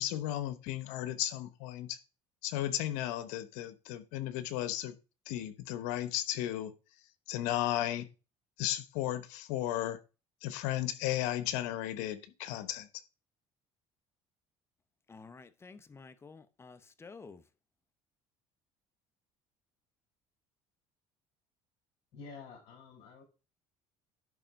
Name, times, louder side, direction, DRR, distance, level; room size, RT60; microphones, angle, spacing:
voice 1, 0.0-2.0 2.4-4.9 5.3-6.7 7.3-8.1 8.6-10.0 10.4-12.9, left 13 dB, 85° left, 1.0 m, -34 dB
voice 2, 15.1-17.4, left 4 dB, 20° left, 0.9 m, -51 dB
voice 3, 22.1-23.2, left 4 dB, 65° left, 5.1 m, -49 dB
11.0 x 3.8 x 5.3 m
cardioid pair, 105°, 12 cm